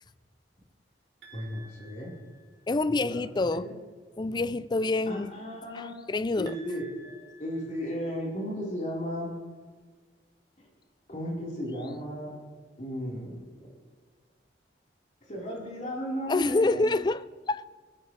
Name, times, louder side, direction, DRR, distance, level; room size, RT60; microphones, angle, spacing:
sound 1, 1.2-2.9 6.5-8.5, right 2 dB, 65° right, 3.2 m, -53 dB
voice 1, 1.3-2.2 3.0-3.2 3.5-3.7 5.0-5.9 6.4-6.9 7.4-9.3 10.6-10.7 11.1-12.3 12.8-13.7 15.3-16.9, equal, 40° left, 4.3 m, -35 dB
voice 2, 2.7-3.7 4.2-5.3 5.7-6.6 16.3-17.7, left 2 dB, 25° left, 0.3 m, -27 dB
20.5 x 14.0 x 3.3 m
head